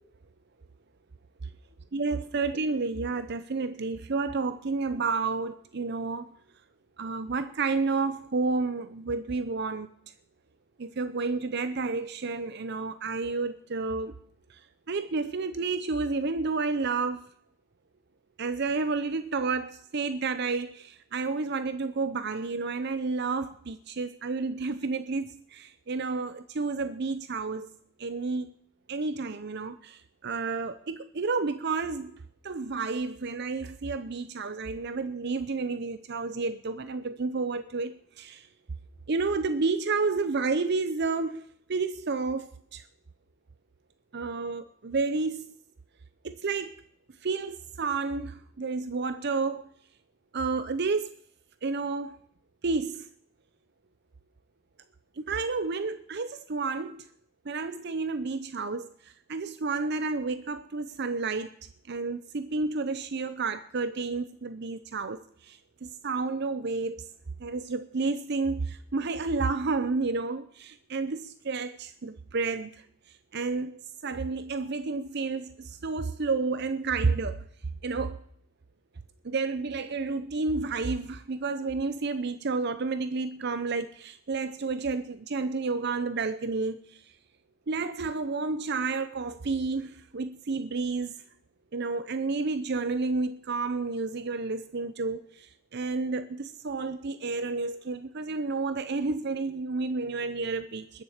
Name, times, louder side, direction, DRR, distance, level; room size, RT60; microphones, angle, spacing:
voice 1, 1.9-6.3 7.0-9.9 10.8-14.1 14.5-14.6 14.9-17.3 18.4-27.7 28.0-28.5 28.9-38.5 39.1-41.4 41.7-42.8 44.1-45.5 46.2-46.7 47.2-49.7 50.3-51.2 51.6-52.2 52.6-53.1 55.2-57.1 57.4-61.5 61.9-67.1 67.4-72.8 73.3-73.7 74.0-77.4 77.8-78.2 79.2-87.1 87.7-91.1 91.7-101.0, right 4 dB, 60° right, 0.7 m, -31 dB
21.0 x 7.4 x 6.6 m
head